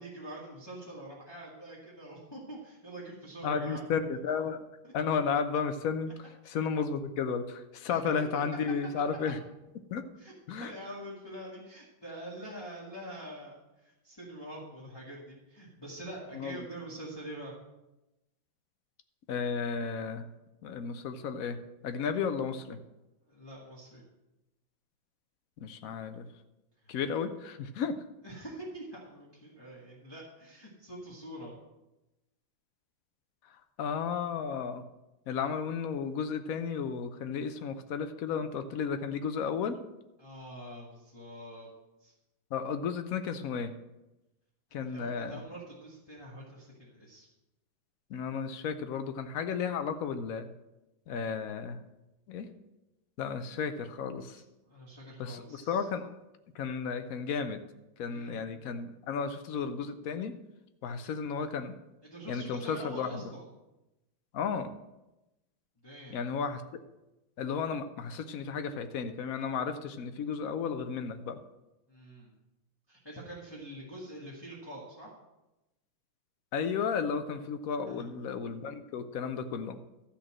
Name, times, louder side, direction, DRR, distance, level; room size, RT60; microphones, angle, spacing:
voice 1, 0.0-3.8 4.8-4.9 7.9-8.0 8.3-8.4 10.2-17.5 23.3-24.0 26.8-27.0 28.2-31.5 40.2-41.7 42.0-42.1 44.8-47.3 54.3-55.8 58.1-58.5 60.8-61.0 62.0-63.5 65.8-66.2 71.9-72.3 72.9-75.1 77.8-78.0, right 1 dB, 10° left, -5 dB, 1.6 m, -45 dB
voice 2, 3.4-4.6 4.9-6.1 6.4-9.4 9.9-10.0 10.5-10.7 16.3-16.7 19.3-20.3 20.6-22.8 25.6-26.3 26.9-28.0 33.4-34.8 35.3-39.8 42.5-43.7 44.7-45.4 48.1-50.5 51.1-51.8 52.3-52.5 53.2-54.4 55.2-56.1 56.5-57.6 58.0-60.3 60.8-61.8 62.3-63.2 64.3-64.7 66.1-66.6 67.4-71.4 76.5-79.8, left 6 dB, 75° left, 9 dB, 0.8 m, -33 dB
13.0 x 4.3 x 7.4 m, 0.97 s
omnidirectional pair, 2.3 m